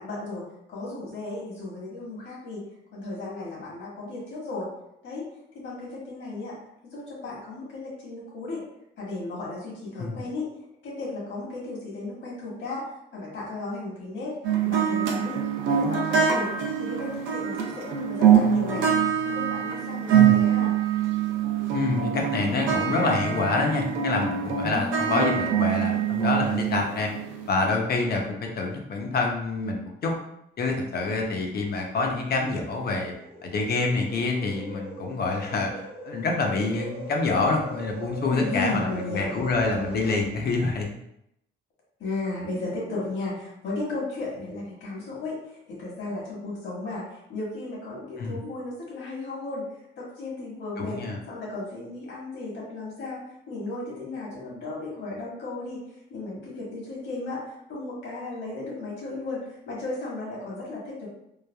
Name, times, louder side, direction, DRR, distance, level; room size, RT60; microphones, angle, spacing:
voice 1, 0.0-2.6 2.9-4.7 5.0-5.3 5.5-6.6 6.9-8.6 9.0-10.5 10.8-12.8 13.1-14.4 14.6-15.4 15.7-18.9 19.2-20.7 38.3-39.4 42.0-49.7 50.0-51.0 51.3-55.8 56.1-57.4 57.7-61.1, left 2 dB, 70° left, -5 dB, 1.4 m, -35 dB
sound 1, 14.4-27.5, right 8 dB, 75° right, 0.5 m, -24 dB
voice 2, 21.7-27.1 27.5-30.1 30.6-33.1 33.4-40.9 48.2-48.4 50.8-51.2, left 3 dB, 50° left, 1 dB, 0.6 m, -27 dB
sound 2, 31.4-40.2, right 1 dB, 30° right, 0.7 m, -40 dB
3.1 x 2.2 x 2.2 m, 0.79 s
cardioid pair, 90°, 20 cm